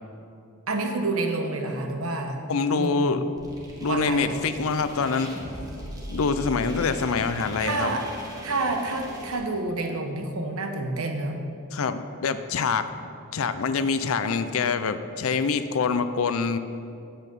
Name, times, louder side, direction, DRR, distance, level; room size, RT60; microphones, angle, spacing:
voice 1, 0.7-2.4 2.8-3.2 3.9-4.3 7.6-8.0 8.4-11.4, right 2 dB, 75° right, 4 dB, 1.0 m, -28 dB
voice 2, 2.5-3.2 3.8-5.3 6.1-7.9 11.7-12.9 13.3-16.6, left 5 dB, 70° left, 11 dB, 0.5 m, -25 dB
sound 1, 3.4-9.4, equal, 15° right, 1.5 m, -39 dB
9.0 x 8.1 x 5.4 m, 2.6 s
head